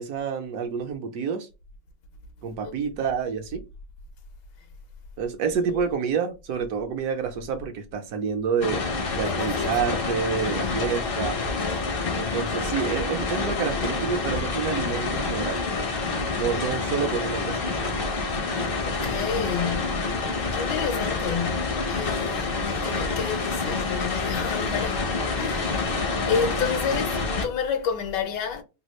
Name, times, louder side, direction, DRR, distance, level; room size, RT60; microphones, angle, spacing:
voice 1, 0.0-1.5 2.4-3.6 5.2-8.8 9.1-11.3 12.1-15.6 16.4-17.6, right 6 dB, 65° right, 1.1 m, -28 dB
voice 2, 5.4-5.9 9.2-10.0 10.5-10.8 18.5-20.1 20.5-25.9 26.3-28.6, left 7 dB, 80° left, 1.3 m, -31 dB
sound 1, 8.6-27.5, left 3 dB, 55° left, 0.6 m, -27 dB
3.4 x 2.3 x 3.0 m
omnidirectional pair, 1.9 m